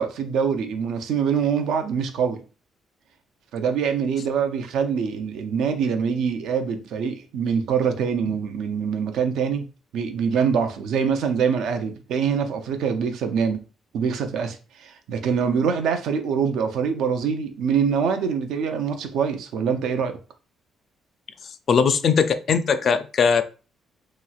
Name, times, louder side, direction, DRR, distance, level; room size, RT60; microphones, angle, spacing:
voice 1, 0.0-2.4 3.5-9.7 9.9-13.6 13.9-20.2, right 6 dB, 80° right, 0.4 m, -24 dB
voice 2, 21.7-23.4, left 6 dB, 55° left, 0.3 m, -20 dB
2.9 x 2.9 x 2.3 m
cardioid pair, 90°, 0 cm